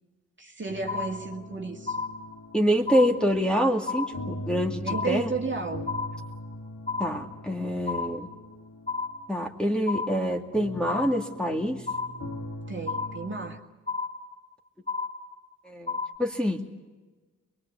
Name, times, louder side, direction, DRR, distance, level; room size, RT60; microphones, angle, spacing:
voice 1, 0.4-2.0 4.8-5.9 12.7-13.7, right 4 dB, 35° right, 2.2 m, -33 dB
sound 1, 0.7-13.6, left 1 dB, 60° left, 2.4 m, -41 dB
sound 2, 0.9-1.5 1.9-2.5 2.9-3.5 3.9-4.5 4.9-5.5 5.9-6.5 6.9-7.5 7.9-8.5 8.9-9.5 9.9-10.5 10.9-11.5 11.9-12.5 12.9-13.5 13.9-14.5 14.9-15.5 15.9-16.2, left 4 dB, 20° left, 3.1 m, -33 dB
voice 2, 2.5-5.3 7.0-8.3 9.3-11.8 15.7-16.6, equal, 5° left, 2.5 m, -26 dB
23.5 x 21.0 x 8.5 m
cardioid pair, 55°, 33 cm